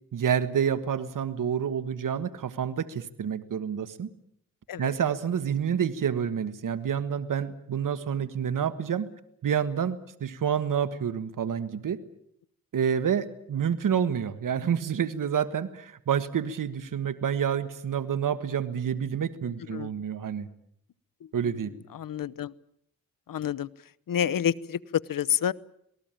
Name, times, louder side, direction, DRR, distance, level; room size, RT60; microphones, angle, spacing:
voice 1, 0.1-4.1 4.8-9.1 9.4-12.0 12.7-20.5 21.3-21.7, right 8 dB, 65° right, 11 dB, 1.5 m, -28 dB
voice 2, 21.9-22.5 23.3-23.7 24.1-25.5, left 9 dB, 70° left, 20 dB, 0.9 m, -28 dB
27.0 x 19.0 x 9.0 m, 0.72 s
cardioid pair, 80°, 34 cm